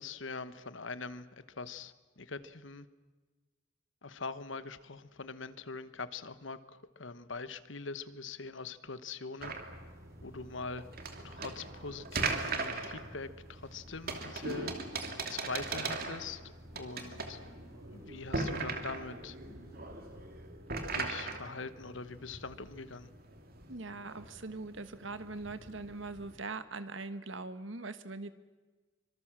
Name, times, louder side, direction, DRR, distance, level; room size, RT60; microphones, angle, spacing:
voice 1, 0.0-2.9 4.0-9.6 10.2-10.8 11.2-14.8 15.3-16.4 16.7-17.4 17.9-19.4 20.9-23.1, left 4 dB, 70° left, 13 dB, 1.2 m, -43 dB
sound 1, 9.4-21.1, equal, 15° right, 4.4 m, -56 dB
sound 2, 9.4-26.4, right 3 dB, 50° right, 2.7 m, -40 dB
Sink (filling or washing), 16.5-21.5, equal, 25° left, 4.4 m, -62 dB
voice 2, 23.7-28.3, right 3 dB, 70° right, 11 dB, 1.5 m, -41 dB
25.0 x 24.5 x 7.6 m, 1.3 s
head